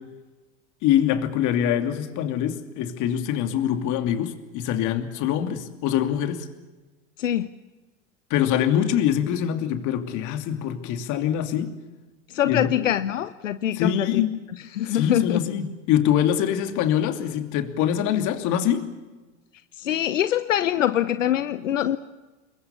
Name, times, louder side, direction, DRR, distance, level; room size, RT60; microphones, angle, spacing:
voice 1, 0.8-6.5 8.3-11.7 12.4-12.9 13.7-14.4 14.9-18.9, left 10 dB, 55° left, 7 dB, 2.9 m, -24 dB
voice 2, 12.3-14.2 14.7-15.4 18.1-18.3 19.8-22.0, left 11 dB, 90° left, 13 dB, 0.8 m, -24 dB
27.5 x 22.0 x 7.0 m, 1.2 s
hypercardioid pair, 90°, 37 cm